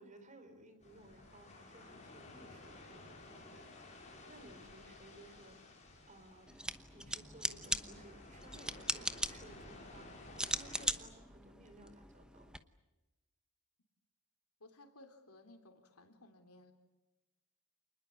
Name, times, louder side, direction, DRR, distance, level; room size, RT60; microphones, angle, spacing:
voice 1, 0.0-6.6 6.9-12.5, right 1 dB, 35° right, 8 dB, 4.4 m, -59 dB
sound 1, 0.8-10.9, left 2 dB, 35° left, 6.3 m, -55 dB
sound 2, 6.5-12.6, right 1 dB, 5° right, 1.0 m, -40 dB
voice 2, 14.6-16.7, left 2 dB, 90° left, 6 dB, 3.7 m, -59 dB
28.0 x 20.5 x 8.6 m, 1.1 s
head